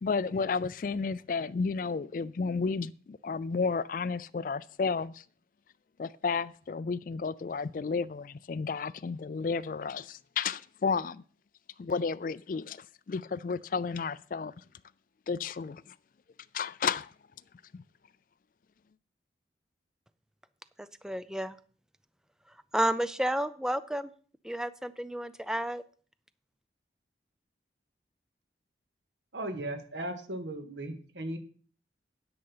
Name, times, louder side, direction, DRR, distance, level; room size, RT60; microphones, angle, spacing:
voice 1, 0.0-5.2 6.0-11.2 11.8-14.5 15.3-15.9 16.5-17.1 17.7-17.8, left 5 dB, 50° left, 0.4 m, -32 dB
voice 2, 21.0-21.6 22.7-24.1 24.4-25.8, right 1 dB, 5° right, 0.5 m, -31 dB
voice 3, 29.3-31.4, right 1 dB, 80° right, 1.8 m, -37 dB
9.8 x 7.9 x 5.6 m
head